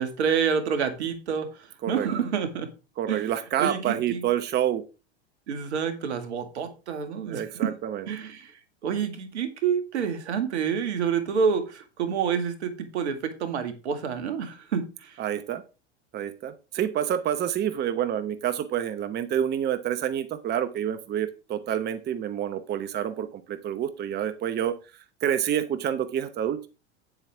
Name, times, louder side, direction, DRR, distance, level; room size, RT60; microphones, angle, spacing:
voice 1, 0.0-2.7 3.1-3.3 3.6-4.3 5.5-7.8 8.1-8.5 8.8-15.2, right 7 dB, 70° right, 8 dB, 2.0 m, -28 dB
voice 2, 3.0-4.8 7.3-8.0 15.2-15.6 16.1-24.8 25.2-26.6, right 10 dB, 30° right, 11 dB, 0.9 m, -28 dB
9.0 x 8.1 x 3.5 m, 0.31 s
hypercardioid pair, 90°, 34 cm